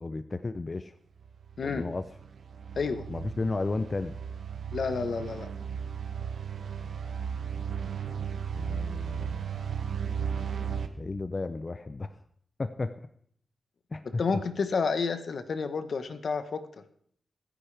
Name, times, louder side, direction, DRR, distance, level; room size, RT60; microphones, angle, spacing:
voice 1, 0.0-0.9 1.6-2.1 3.1-4.2 8.5-9.5 11.0-12.1 12.6-13.0 13.9-14.2, left 3 dB, 35° left, 10 dB, 0.6 m, -33 dB
sound 1, 1.2-10.9, right 7 dB, 85° right, 1.1 m, -35 dB
voice 2, 4.7-5.5 14.0-16.6, left 5 dB, 65° left, 9 dB, 1.1 m, -30 dB
24.5 x 10.5 x 3.4 m, 0.64 s
wide cardioid pair, 90°, 0 cm